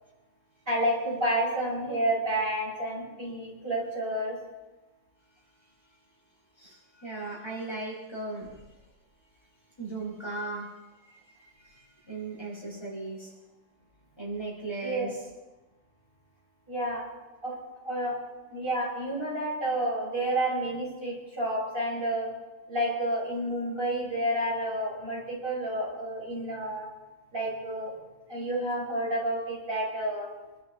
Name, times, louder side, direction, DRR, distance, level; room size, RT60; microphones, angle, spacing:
voice 1, 0.7-4.4 14.8-15.1 16.7-17.0 17.4-18.2 18.5-22.3 22.7-26.9 27.3-27.9 28.3-30.3, right 1 dB, 40° right, -6 dB, 6.9 m, -30 dB
voice 2, 6.6-8.7 9.8-10.7 11.1-13.3 14.2-15.2, right 3 dB, 20° left, -7 dB, 5.7 m, -37 dB
26.5 x 13.0 x 4.1 m, 1.1 s
omnidirectional pair, 1.4 m